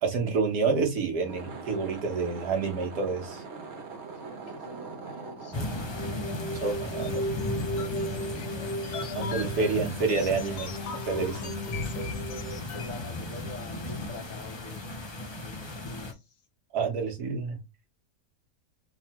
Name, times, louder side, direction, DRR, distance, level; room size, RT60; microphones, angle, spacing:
voice 1, 0.0-3.4 6.5-7.2 9.1-10.7 11.1-11.6 16.7-17.6, right 4 dB, 75° right, 1.5 m, -28 dB
sound 1, 1.1-7.7, right 4 dB, 50° right, 1.2 m, -43 dB
voice 2, 4.2-5.9 7.5-8.5 11.7-14.9 15.4-16.2, left 2 dB, 60° left, 1.3 m, -46 dB
sound 2, 5.5-16.1, left 2 dB, 30° left, 0.5 m, -36 dB
sound 3, 5.9-13.1, left 1 dB, 85° left, 1.4 m, -36 dB
3.7 x 3.1 x 4.2 m
omnidirectional pair, 1.7 m